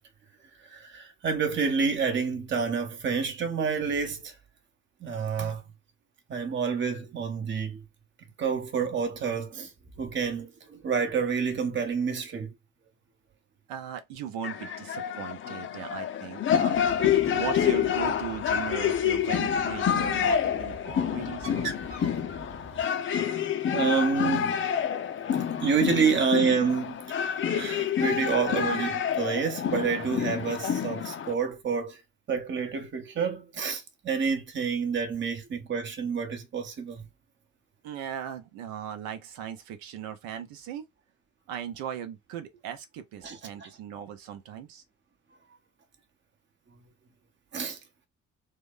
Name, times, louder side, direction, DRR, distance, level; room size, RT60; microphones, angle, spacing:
voice 1, 0.6-4.3 5.0-5.6 6.3-7.8 8.4-9.7 10.0-12.5 22.7-22.9 23.7-24.6 25.6-32.0 32.3-37.0 43.2-43.7 47.5-47.8, right 5 dB, 30° right, 0.8 m, -28 dB
voice 2, 13.7-16.9 17.3-21.7 37.8-40.8 41.5-44.8, right 9 dB, 65° right, 0.8 m, -38 dB
sound 1, 14.4-31.3, left 8 dB, 30° left, 0.5 m, -28 dB
Bird, 16.7-22.8, right 3 dB, 85° right, 1.1 m, -44 dB
3.0 x 2.2 x 3.5 m
figure-of-eight pair, 40°, 39 cm